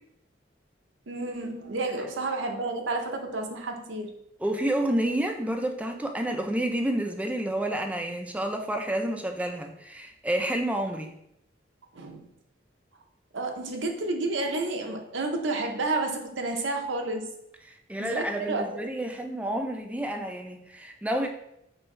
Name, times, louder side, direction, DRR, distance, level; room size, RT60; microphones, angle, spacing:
voice 1, 1.1-4.1 11.9-12.2 13.3-17.3 18.0-18.8, right 2 dB, 85° right, 3 dB, 0.7 m, -30 dB
voice 2, 4.4-11.1 17.9-21.3, right 1 dB, 10° right, 4 dB, 0.4 m, -29 dB
4.6 x 3.4 x 3.2 m, 0.80 s
head